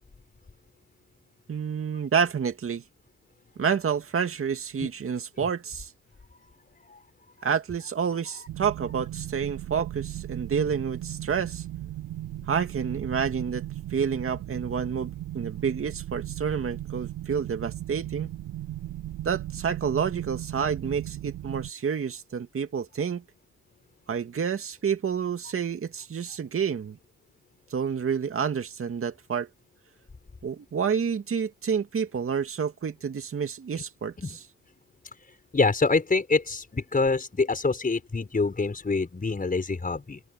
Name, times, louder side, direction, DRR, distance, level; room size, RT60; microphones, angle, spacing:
voice 1, 1.5-2.8 3.6-5.9 7.4-11.6 12.5-13.6 13.9-18.3 19.2-23.2 24.1-27.0 27.7-29.5 30.4-34.4, right 7 dB, 45° right, 2.2 m, -29 dB
sound 1, 8.5-21.7, right 13 dB, 80° right, 5.9 m, -37 dB
voice 2, 35.3-40.2, left 3 dB, 30° left, 5.7 m, -26 dB
open air
cardioid pair, 75°, 31 cm